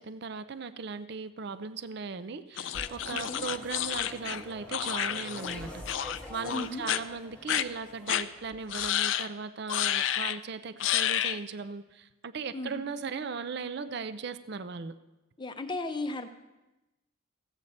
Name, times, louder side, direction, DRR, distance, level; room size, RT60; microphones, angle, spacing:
voice 1, 0.0-5.8 6.3-15.0, right 5 dB, 50° right, 13 dB, 0.5 m, -38 dB
sound 1, 2.6-5.6 5.9-6.2 6.5-7.0 7.5-7.6 8.1-8.2 8.7-9.3 9.7-10.4 10.8-11.4, left 11 dB, 65° left, 0.4 m, -30 dB
sound 2, 2.7-8.9, left 1 dB, 5° left, 1.1 m, -46 dB
voice 2, 3.1-3.4 6.5-6.8 12.5-12.8 15.4-16.3, left 2 dB, 20° left, 8 dB, 0.6 m, -35 dB
15.5 x 8.1 x 4.2 m, 1.0 s
head